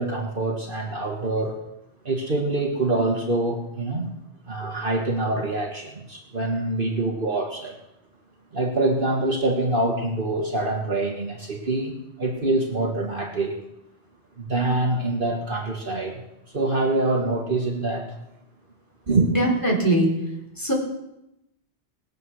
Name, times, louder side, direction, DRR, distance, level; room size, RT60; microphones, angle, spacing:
voice 1, 0.0-1.6 2.1-4.1 4.5-7.8 8.5-13.6 14.4-16.2 16.5-18.1 19.1-19.3, right 2 dB, 50° right, 1 dB, 1.8 m, -25 dB
voice 2, 19.3-20.1 20.6-20.7, right 1 dB, 15° left, -2 dB, 4.4 m, -21 dB
20.5 x 8.1 x 6.4 m, 0.87 s
omnidirectional pair, 1.2 m